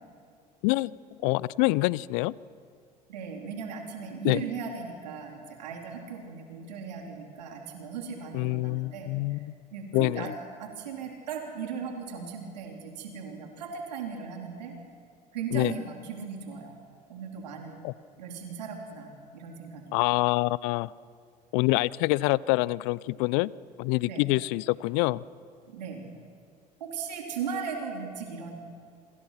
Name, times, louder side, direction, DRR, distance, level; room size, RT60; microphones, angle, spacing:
voice 1, 1.2-2.3 4.2-4.4 8.3-9.5 9.9-10.3 15.5-15.7 17.8-17.9 19.9-20.9 21.5-23.5 23.8-25.2, left 22 dB, 65° left, 22 dB, 0.6 m, -26 dB
voice 2, 3.1-9.4 9.7-10.3 10.6-14.8 15.3-16.8 17.1-17.8 18.2-20.0 24.1-24.2 25.7-26.1 26.8-28.5, right 6 dB, 80° right, 2 dB, 3.8 m, -37 dB
27.5 x 26.0 x 5.9 m, 2.2 s
hypercardioid pair, 60°, 21 cm